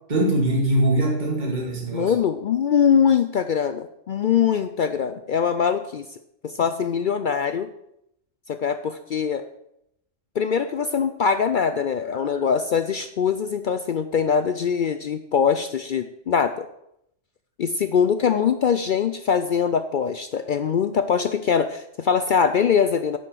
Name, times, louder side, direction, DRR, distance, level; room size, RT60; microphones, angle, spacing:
voice 1, 0.1-2.1, right 1 dB, 35° right, -2 dB, 2.2 m, -22 dB
voice 2, 1.9-6.2 6.4-7.7 8.5-9.4 10.4-16.7 17.6-23.2, left 7 dB, 65° left, 9 dB, 0.5 m, -22 dB
10.0 x 4.9 x 7.6 m, 0.78 s
omnidirectional pair, 1.3 m